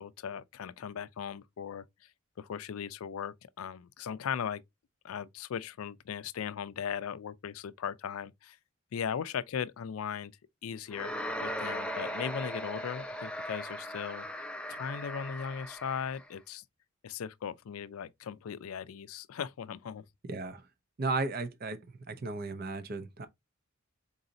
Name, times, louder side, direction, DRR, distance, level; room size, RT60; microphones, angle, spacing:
voice 1, 0.0-1.8 2.4-4.6 5.0-8.6 8.9-10.3 10.6-11.1 11.4-14.3 14.7-16.6 17.0-20.0, left 7 dB, 85° left, 0.4 m, -38 dB
sound 1, 10.9-16.3, equal, 5° left, 0.4 m, -38 dB
voice 2, 20.3-20.6 21.0-21.8 22.1-23.3, right 3 dB, 45° right, 0.6 m, -34 dB
4.0 x 3.9 x 2.6 m
head